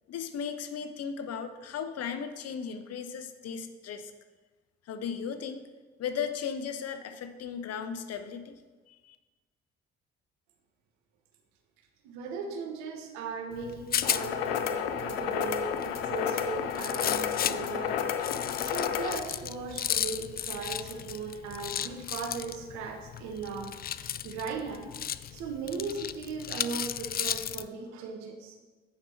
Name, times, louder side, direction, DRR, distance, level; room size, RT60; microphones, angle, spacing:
voice 1, 0.1-4.1 4.9-5.6 6.0-8.6 8.9-9.2, left 7 dB, 55° left, 8 dB, 0.9 m, -36 dB
voice 2, 12.0-18.0 18.6-23.7 24.2-24.9 25.3-28.5, right 4 dB, 70° right, 4 dB, 1.3 m, -37 dB
Rattle, 13.5-27.7, left 10 dB, 30° left, 0.4 m, -35 dB
sound 1, 14.0-19.2, left 8 dB, 85° left, 0.6 m, -31 dB
9.3 x 5.9 x 4.5 m, 1.3 s
hypercardioid pair, 50°, 29 cm